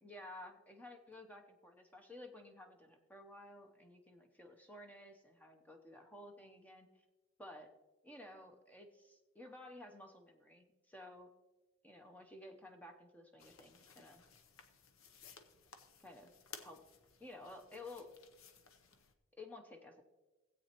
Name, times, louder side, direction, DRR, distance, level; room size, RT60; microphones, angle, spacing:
voice 1, 0.0-6.9 7.4-7.7 8.0-11.3 11.8-14.2 16.0-16.3 16.6-16.8 17.2-18.1 19.4-20.0, left 1 dB, 10° left, 4 dB, 0.7 m, -54 dB
sound 1, 13.4-19.1, left 6 dB, 80° left, 0.8 m, -58 dB
16.5 x 8.2 x 2.9 m, 1.2 s
head